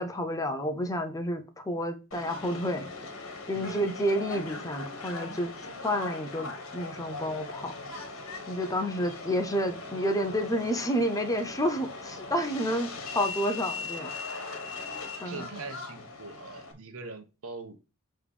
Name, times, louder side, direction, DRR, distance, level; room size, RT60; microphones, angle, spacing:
voice 1, 0.0-2.9 3.5-5.5 5.8-7.7 8.5-12.9 13.1-14.1 15.2-15.4, equal, 15° left, 0.9 m, -30 dB
Subway metro underground, 2.1-16.7, left 3 dB, 70° left, 1.5 m, -40 dB
voice 2, 15.2-17.8, right 3 dB, 75° right, 1.2 m, -42 dB
7.0 x 3.4 x 5.1 m
head